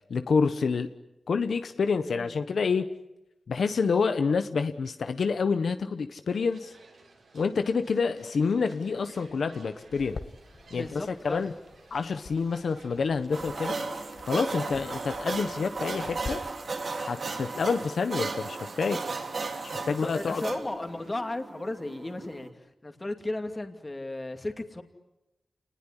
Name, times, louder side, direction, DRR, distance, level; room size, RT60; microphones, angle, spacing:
voice 1, 0.1-0.9 1.3-2.9 3.5-6.7 7.3-10.2 10.7-11.5 11.9-13.8 14.2-16.4 17.0-19.0 19.9-20.4, left 5 dB, 75° left, 9 dB, 1.1 m, -28 dB
voice 2, 2.0-2.4 10.7-11.4 19.8-24.8, left 2 dB, 25° left, 6 dB, 2.6 m, -35 dB
sound 1, 6.3-21.2, right 3 dB, 75° right, 7.5 m, -56 dB
sound 2, 9.9-16.3, left 4 dB, 55° left, 1.8 m, -46 dB
sound 3, 13.3-22.5, right 3 dB, 60° right, 3.5 m, -35 dB
29.5 x 20.0 x 10.0 m, 0.95 s
wide cardioid pair, 120°, 0 cm